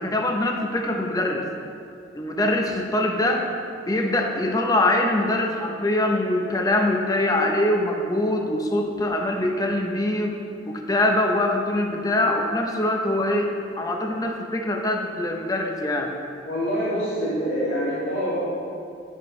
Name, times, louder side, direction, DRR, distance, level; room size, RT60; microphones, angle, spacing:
voice 1, 0.0-1.4 2.1-3.5 3.9-10.4 10.7-13.5 13.8-16.1, left 1 dB, 20° left, 2 dB, 0.6 m, -23 dB
voice 2, 16.5-18.4, equal, 85° left, -11 dB, 2.0 m, -25 dB
10.5 x 8.2 x 3.2 m, 2.5 s
head